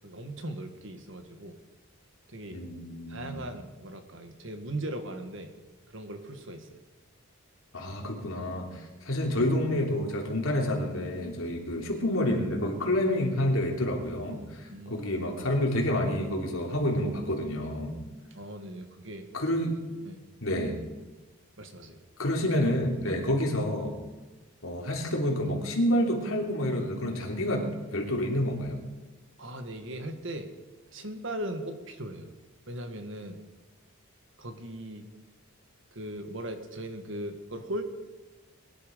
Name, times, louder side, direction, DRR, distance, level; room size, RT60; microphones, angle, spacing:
voice 1, 0.0-1.5 2.3-2.6 3.1-5.5 5.9-6.8 14.7-15.1 18.3-19.3 20.0-20.2 21.6-22.0 29.4-30.5 30.9-32.3 32.7-33.4 34.4-35.1 35.9-37.8, right 1 dB, 60° right, 7 dB, 1.6 m, -38 dB
voice 2, 2.5-3.4 7.7-18.0 19.3-19.8 20.4-20.8 22.2-24.0 24.6-28.8, left 1 dB, 70° left, 1 dB, 3.1 m, -28 dB
22.0 x 11.5 x 5.2 m, 1.2 s
head